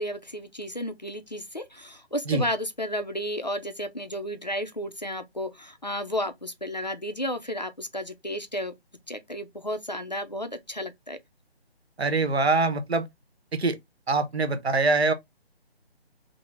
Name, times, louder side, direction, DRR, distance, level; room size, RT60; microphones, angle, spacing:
voice 1, 0.0-8.7 9.1-11.2, equal, 45° left, 0.4 m, -32 dB
voice 2, 12.0-13.1 13.5-13.8 14.1-15.1, right 3 dB, 75° right, 1.0 m, -24 dB
3.9 x 2.1 x 3.3 m
figure-of-eight pair, 180°, 32 cm